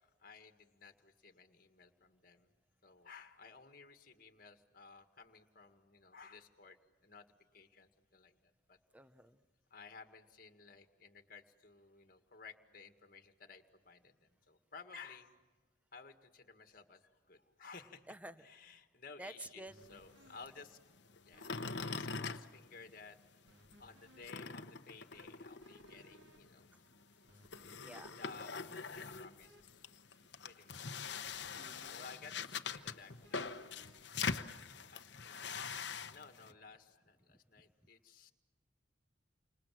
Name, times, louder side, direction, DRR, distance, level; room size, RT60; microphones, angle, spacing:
voice 1, 0.0-2.5 2.8-7.3 7.5-8.8 9.7-15.3 15.9-18.1 18.4-20.8 21.2-21.5 21.8-23.2 23.8-26.7 28.2-29.9 30.4-31.1 31.9-34.0 34.7-35.6 36.1-38.3, left 4 dB, 45° left, 7 dB, 1.8 m, -56 dB
voice 2, 8.9-9.4 18.1-18.3 19.2-19.7 26.7-26.8 27.8-28.2 31.5-32.0, right 1 dB, 5° right, 11 dB, 0.8 m, -50 dB
sound 1, 19.7-34.9, equal, 70° right, 2.4 m, -68 dB
sound 2, 19.8-23.3 23.6-36.5, left 5 dB, 65° left, 0.9 m, -44 dB
30.0 x 26.0 x 7.6 m, 1.3 s
head